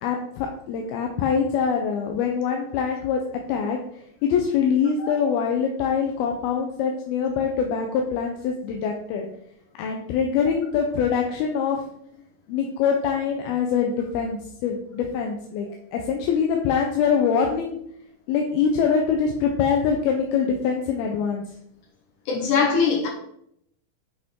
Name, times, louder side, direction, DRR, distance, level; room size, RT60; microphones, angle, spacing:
voice 1, 0.0-3.2 3.5-3.8 4.2-9.3 9.8-11.8 12.5-15.7 15.9-17.8 18.3-21.4, left 6 dB, 90° left, 2 dB, 2.7 m, -24 dB
voice 2, 22.3-23.1, left 5 dB, 70° left, 1 dB, 2.2 m, -22 dB
8.5 x 5.1 x 3.7 m, 0.71 s
omnidirectional pair, 4.2 m